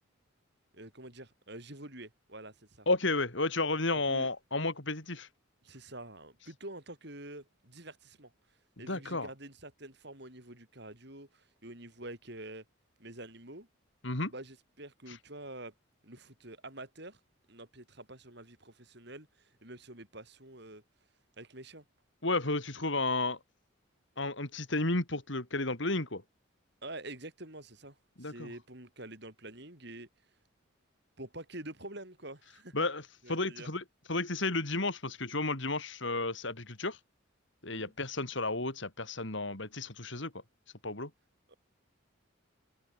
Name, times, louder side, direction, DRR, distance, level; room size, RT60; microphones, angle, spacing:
voice 1, 0.7-2.9 3.9-4.3 5.6-8.3 8.8-12.6 13.0-13.7 14.2-15.7 16.0-17.2 17.5-20.8 21.4-21.8 26.8-30.1 31.2-32.7 33.2-33.7 37.7-37.9 41.5-41.6, right 1 dB, 55° right, 6.7 m, -47 dB
voice 2, 2.9-5.3 8.9-9.3 14.0-14.3 22.2-23.4 24.2-26.2 28.2-28.5 32.7-33.0 33.3-37.0 37.6-40.3 40.8-41.1, left 2 dB, 60° left, 3.3 m, -32 dB
head